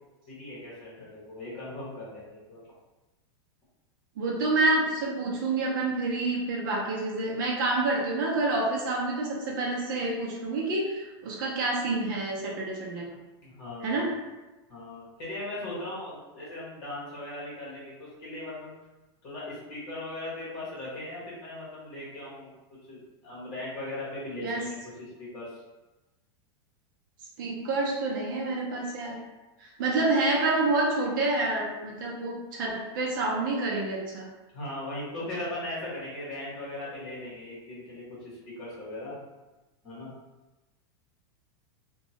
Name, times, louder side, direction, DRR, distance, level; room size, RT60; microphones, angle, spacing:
voice 1, 0.3-2.7 13.4-14.1 14.7-18.8 19.2-22.5 22.9-24.6 25.0-25.6 34.5-39.2 39.8-40.1, left 1 dB, 35° left, -8 dB, 1.2 m, -38 dB
voice 2, 4.2-13.2 13.8-14.1 24.4-24.7 27.4-29.2 29.6-34.3, right 2 dB, 50° right, -2 dB, 0.6 m, -28 dB
2.8 x 2.2 x 2.8 m, 1.1 s
supercardioid pair, 180°, 14 cm